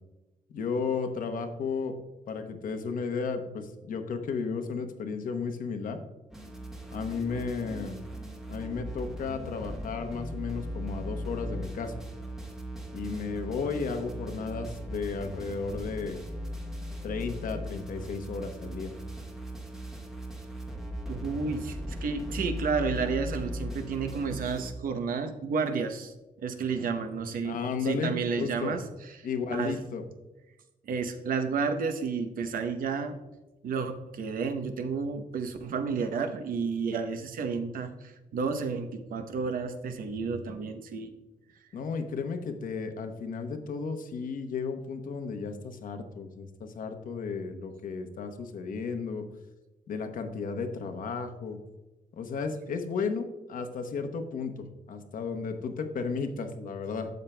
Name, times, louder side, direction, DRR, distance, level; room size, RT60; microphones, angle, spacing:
voice 1, 0.5-2.0 2.3-6.0 6.9-8.0 8.5-11.9 12.9-16.2 17.0-18.9 27.4-28.8 29.2-30.0 41.7-49.3 49.9-51.6 52.2-57.1, left 5 dB, 70° left, 7 dB, 0.9 m, -34 dB
sound 1, 6.3-24.7, equal, 5° right, 1.1 m, -38 dB
voice 2, 21.1-28.8 29.2-29.8 30.8-33.2 33.6-41.1, right 5 dB, 75° right, 8 dB, 0.8 m, -31 dB
12.0 x 7.3 x 2.2 m, 1.1 s
wide cardioid pair, 175°, 15 cm